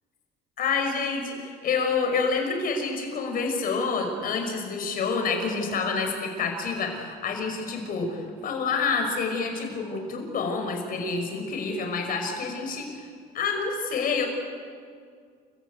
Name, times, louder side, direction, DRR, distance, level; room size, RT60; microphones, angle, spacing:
voice 1, 0.6-13.1 13.3-14.2, left 4 dB, 55° left, 4 dB, 5.6 m, -28 dB
28.5 x 15.5 x 9.4 m, 2.2 s
cardioid pair, 110°, 17 cm